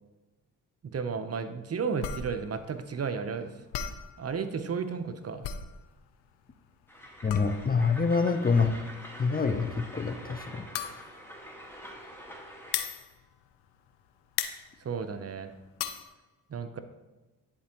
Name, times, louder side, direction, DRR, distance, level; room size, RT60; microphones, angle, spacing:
voice 1, 0.8-3.5 4.2-5.5 14.8-15.5 16.5-16.8, right 5 dB, 40° right, 9 dB, 0.7 m, -33 dB
sound 1, 2.0-14.0 14.3-16.1, left 9 dB, 80° left, 0.6 m, -38 dB
Train, 6.9-12.9, equal, 5° left, 1.6 m, -46 dB
voice 2, 7.2-8.7 9.2-10.7, left 5 dB, 25° left, 7 dB, 0.6 m, -26 dB
10.0 x 4.4 x 2.9 m, 1.1 s
supercardioid pair, 50°, 39 cm